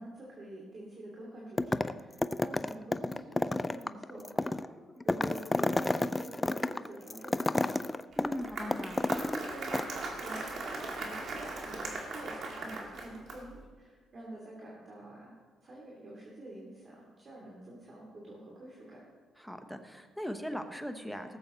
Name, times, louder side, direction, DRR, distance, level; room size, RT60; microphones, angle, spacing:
voice 1, 0.0-4.5 5.0-7.8 8.5-15.3 15.6-19.0, right 1 dB, 40° right, -4 dB, 3.2 m, -47 dB
sound 1, 1.6-9.5 9.7-9.8, left 2 dB, 15° left, 0.4 m, -31 dB
voice 2, 8.1-9.0 19.4-21.4, equal, ahead, 6 dB, 1.1 m, -39 dB
Applause, 8.1-13.6, right 3 dB, 60° right, 2.3 m, -39 dB
18.0 x 7.7 x 4.1 m, 1.4 s
cardioid pair, 90°, 0 cm